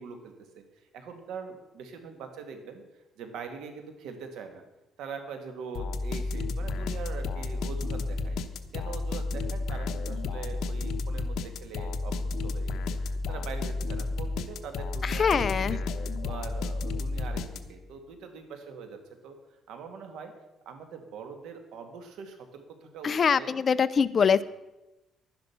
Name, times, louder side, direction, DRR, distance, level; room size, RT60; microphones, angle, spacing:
voice 1, 0.0-2.8 3.2-4.6 5.0-8.4 8.7-12.8 13.3-15.9 16.2-19.4 19.7-20.3 20.7-23.5 24.4-24.5, right 5 dB, 85° right, 6 dB, 2.1 m, -42 dB
sound 1, 5.7-17.9, left 3 dB, 75° left, 0.9 m, -32 dB
voice 2, 15.0-15.8 23.0-24.4, left 6 dB, 40° left, 15 dB, 0.5 m, -24 dB
11.5 x 10.5 x 5.9 m, 1.0 s
cardioid pair, 120°, 0 cm